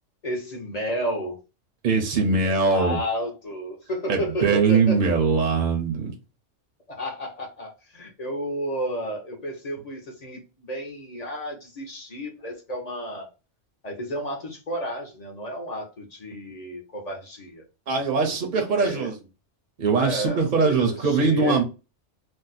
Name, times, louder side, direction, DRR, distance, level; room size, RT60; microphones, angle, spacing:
voice 1, 0.2-1.4 2.4-5.0 6.9-13.3 13.8-17.6 18.3-18.4 18.7-19.1 19.9-21.6, equal, 40° left, 0.7 m, -32 dB
voice 2, 1.8-3.0 4.1-6.1 17.9-19.2 19.8-21.6, right 4 dB, 50° right, 0.6 m, -22 dB
2.6 x 2.1 x 4.0 m
omnidirectional pair, 1.2 m